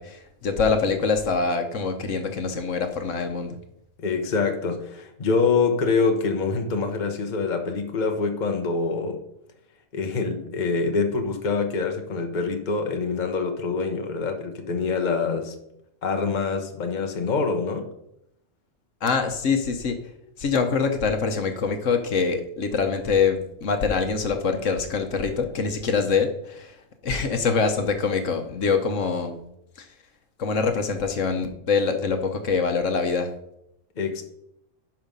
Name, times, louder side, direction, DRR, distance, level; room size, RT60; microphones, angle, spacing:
voice 1, 0.0-3.6 19.0-20.0 20.4-29.4 29.8-29.9 30.4-33.3, left 5 dB, 70° left, 6 dB, 1.3 m, -24 dB
voice 2, 4.0-9.2 9.9-15.5 16.0-17.9 34.0-34.2, left 4 dB, 40° left, 4 dB, 1.1 m, -25 dB
10.5 x 5.6 x 5.3 m, 0.79 s
omnidirectional pair, 1.3 m